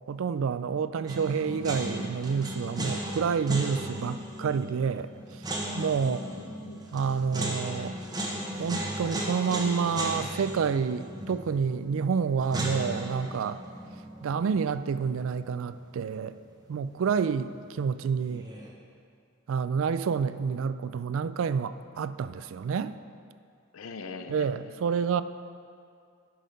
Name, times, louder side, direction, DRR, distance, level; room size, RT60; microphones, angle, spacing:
voice 1, 0.1-6.2 6.9-8.0 8.6-13.6 14.2-16.4 16.7-18.5 19.5-23.0 24.3-25.2, right 6 dB, 70° right, 14 dB, 0.3 m, -29 dB
sound 1, 1.1-16.1 16.3-16.4 18.2-18.7, right 1 dB, 20° right, 1.1 m, -36 dB
voice 2, 6.0-7.8 23.7-24.8, left 3 dB, 85° left, 8 dB, 0.6 m, -43 dB
10.0 x 6.4 x 5.3 m, 2.3 s
head